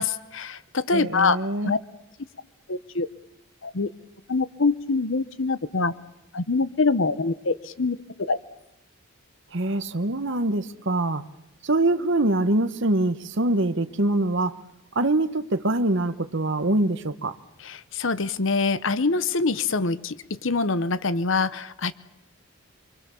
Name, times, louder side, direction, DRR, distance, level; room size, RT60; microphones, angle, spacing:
voice 1, 0.0-1.4 1.6-1.8 2.7-3.1 3.6-3.9 4.3-5.9 6.3-8.0 8.3-8.4 17.6-20.2 20.4-21.9, left 4 dB, 60° left, 0.9 m, -24 dB
voice 2, 0.9-1.7 9.5-11.2 11.6-14.6 14.9-17.4, right 2 dB, 55° right, 1.1 m, -24 dB
25.5 x 25.0 x 7.1 m
head